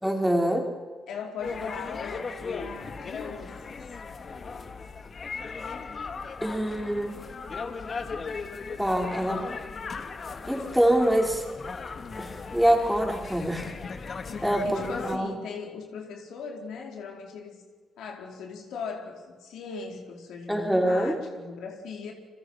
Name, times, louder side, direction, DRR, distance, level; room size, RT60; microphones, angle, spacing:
voice 1, 0.0-0.7 6.4-7.2 8.8-9.5 10.5-11.4 12.1-13.7 14.4-15.3 20.5-21.1, right 1 dB, ahead, 1 dB, 4.8 m, -25 dB
voice 2, 1.1-3.8 14.2-17.6 18.0-22.1, left 5 dB, 80° left, 2 dB, 4.6 m, -39 dB
sound 1, 1.4-15.2, left 4 dB, 40° left, 2.0 m, -37 dB
30.0 x 22.5 x 5.9 m, 1.5 s
cardioid pair, 90°, 0 cm